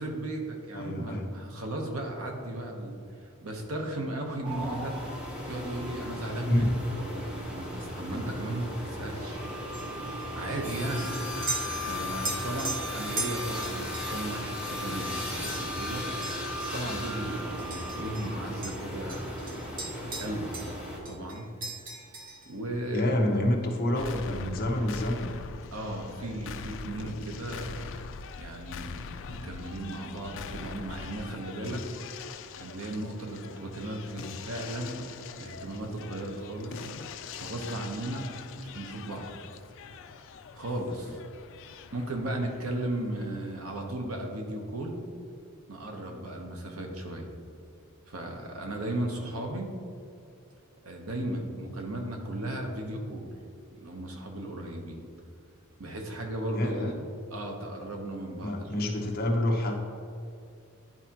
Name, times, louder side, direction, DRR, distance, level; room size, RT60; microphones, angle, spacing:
voice 1, 0.0-2.9 3.2-5.0 5.5-6.7 6.9-9.5 10.4-11.1 11.8-16.1 16.7-19.4 20.0-20.5 21.1-21.5 22.5-23.1 25.7-28.0 28.4-31.9 32.6-35.0 35.4-36.9 37.4-38.3 38.6-39.3 40.5-41.2 41.7-45.0 45.7-47.4 48.1-49.7 50.8-53.3 53.7-55.0 55.8-56.9 57.3-58.9, right 1 dB, 75° right, 2 dB, 1.0 m, -36 dB
voice 2, 0.7-1.2 6.5-6.8 22.9-25.3 56.5-56.9 58.4-59.8, left 1 dB, 45° left, 0 dB, 0.9 m, -28 dB
sound 1, 4.4-21.0, left 1 dB, 5° right, 0.9 m, -36 dB
sound 2, 9.7-18.3 18.6-20.8 21.0-22.6, right 3 dB, 40° right, 0.9 m, -40 dB
sound 3, 24.0-43.9, left 5 dB, 60° left, 0.4 m, -43 dB
10.5 x 4.3 x 2.9 m, 2.5 s
head